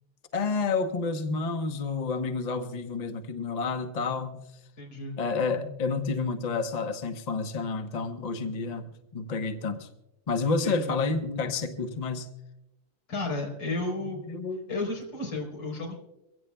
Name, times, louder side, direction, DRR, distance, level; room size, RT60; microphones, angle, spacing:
voice 1, 0.3-4.4 5.2-9.9 10.3-12.3 14.0-14.7, left 4 dB, 75° left, 6 dB, 0.3 m, -30 dB
voice 2, 4.8-5.2 10.5-10.9 13.1-14.2 14.7-16.0, left 2 dB, 55° left, -1 dB, 4.5 m, -33 dB
23.5 x 17.0 x 2.3 m, 0.92 s
omnidirectional pair, 2.4 m